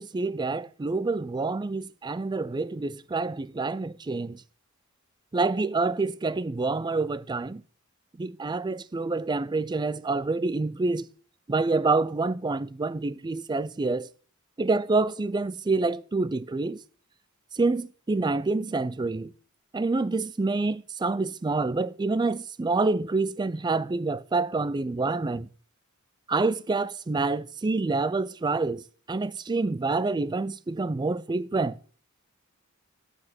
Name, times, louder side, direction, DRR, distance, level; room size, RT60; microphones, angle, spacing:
voice 1, 0.0-4.4 5.3-7.6 8.2-11.1 11.5-14.1 14.6-16.8 17.5-19.3 19.7-25.5 26.3-28.8 29.1-31.8, right 3 dB, 20° right, 0.4 m, -27 dB
8.5 x 6.9 x 6.0 m
head